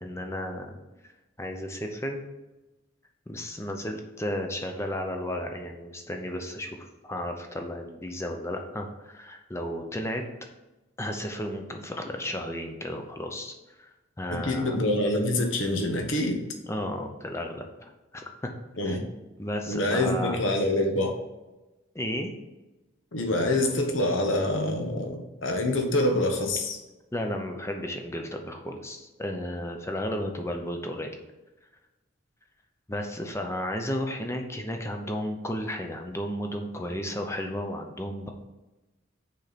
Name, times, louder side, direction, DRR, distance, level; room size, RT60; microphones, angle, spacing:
voice 1, 0.0-0.8 1.4-2.2 3.3-10.2 11.0-13.9 14.2-14.8 16.6-18.5 18.8-19.0 19.4-20.4 21.9-22.3 27.1-31.2 32.9-38.3, left 1 dB, 15° left, 4 dB, 0.6 m, -33 dB
voice 2, 14.3-16.4 18.8-19.0 19.7-21.1 23.1-26.8, left 1 dB, 70° left, 3 dB, 1.1 m, -26 dB
6.3 x 4.4 x 4.1 m, 1.1 s
head